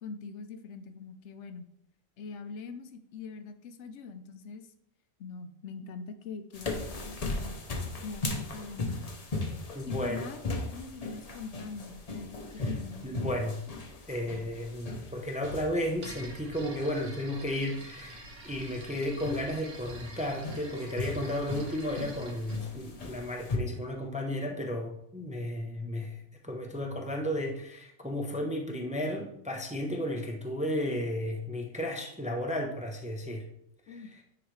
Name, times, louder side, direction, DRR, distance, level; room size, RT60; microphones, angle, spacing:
voice 1, 0.0-1.7 2.2-4.7 5.2-9.1 9.9-13.5 33.9-34.1, left 5 dB, 65° left, 9 dB, 0.8 m, -43 dB
sound 1, 6.5-23.6, left 2 dB, 35° left, 0.7 m, -38 dB
voice 2, 9.7-10.3 12.6-12.7 13.0-13.6 14.1-26.2 26.5-33.5 33.9-34.2, left 1 dB, 10° right, 2 dB, 0.4 m, -33 dB
sound 2, 16.0-22.6, right 2 dB, 60° right, 1.3 m, -48 dB
9.7 x 4.0 x 3.2 m, 0.75 s
omnidirectional pair, 1.4 m